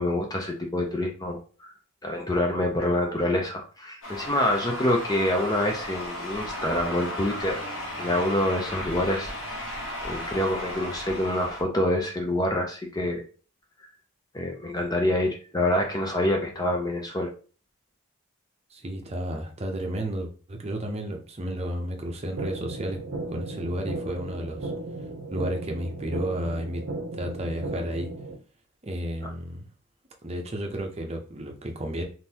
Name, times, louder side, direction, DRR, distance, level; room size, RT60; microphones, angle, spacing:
voice 1, 0.0-1.4 2.0-7.6 8.0-9.3 10.0-13.2 14.3-17.3, left 1 dB, 20° left, 2 dB, 0.4 m, -26 dB
sound 1, 4.0-11.6, left 1 dB, 70° left, 1.0 m, -35 dB
voice 2, 18.7-23.0 23.3-24.7 25.3-26.8 27.1-28.1 28.8-29.7 30.2-32.0, right 1 dB, 30° right, 3 dB, 0.6 m, -32 dB
sound 2, 22.4-28.4, right 2 dB, 70° right, 0.7 m, -35 dB
3.6 x 2.6 x 2.8 m, 0.38 s
head